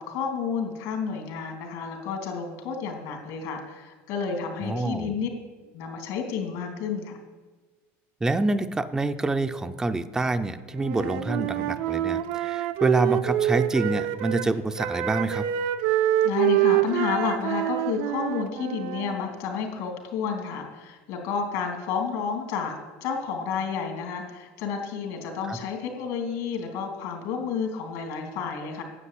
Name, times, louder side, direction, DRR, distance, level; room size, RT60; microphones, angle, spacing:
voice 1, 0.0-5.3 5.7-7.2 16.2-28.8, left 6 dB, 65° left, 2 dB, 3.0 m, -31 dB
voice 2, 4.6-5.1 8.2-15.4 25.5-25.6, right 2 dB, 10° right, 8 dB, 0.5 m, -27 dB
Wind instrument woodwind instrument, 10.8-14.5 14.8-19.2, right 13 dB, 70° right, 0.7 m, -26 dB
9.9 x 7.7 x 8.4 m, 1.3 s
supercardioid pair, 140°, 6 cm